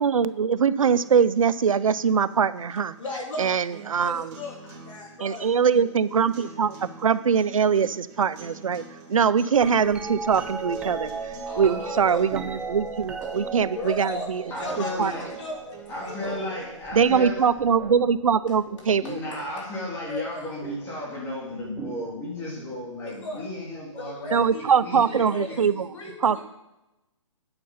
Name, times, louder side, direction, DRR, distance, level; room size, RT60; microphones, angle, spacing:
voice 1, 0.0-2.9 3.4-4.3 5.2-8.8 9.1-14.4 15.0-15.1 16.9-19.2 24.3-25.9 26.2-26.4, right 6 dB, 90° right, 16 dB, 0.6 m, -22 dB
sound 1, 0.9-16.9, right 4 dB, 30° right, 2.4 m, -48 dB
voice 2, 3.0-3.5 4.0-5.5 11.5-12.3 13.7-16.5 19.0-19.7 20.1-20.5 23.1-23.5 24.0-24.6 24.9-25.6 25.9-26.4, left 2 dB, 65° left, -2 dB, 3.8 m, -37 dB
sound 2, 9.6-19.7 20.6-21.0 21.8-22.8 24.5-24.6, right 4 dB, 5° right, 0.5 m, -37 dB
voice 3, 14.5-15.3 15.9-17.4 19.0-24.5 24.7-25.5 25.9-26.1, left 1 dB, 15° left, -4 dB, 3.4 m, -34 dB
9.1 x 7.8 x 5.6 m, 0.99 s
hypercardioid pair, 160°, 17 cm